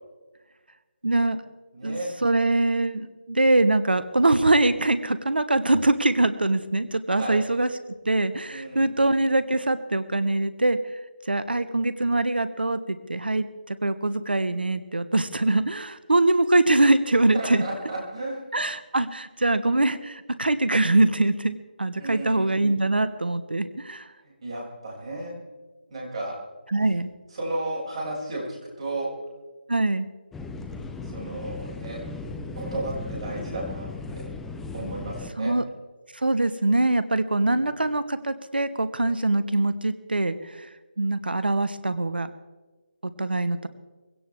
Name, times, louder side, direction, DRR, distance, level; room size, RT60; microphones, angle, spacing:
voice 1, 1.0-1.4 1.8-7.7 8.0-10.8 11.3-17.6 18.5-24.1 26.7-27.1 29.7-30.1 35.4-35.6 36.1-40.7 41.0-42.3 43.0-43.7, right 2 dB, 70° right, 13 dB, 1.1 m, -23 dB
voice 2, 1.7-2.1 7.2-7.4 8.5-8.9 17.3-18.5 22.0-22.5 24.2-25.4 25.9-26.4 27.3-29.1 31.0-32.0 32.6-34.3 34.7-35.6 37.3-37.7, right 2 dB, 35° right, -3 dB, 6.8 m, -33 dB
sound 1, 30.3-35.3, left 3 dB, 5° left, 0.6 m, -36 dB
21.5 x 17.0 x 3.6 m, 1.3 s
figure-of-eight pair, 155°, 5 cm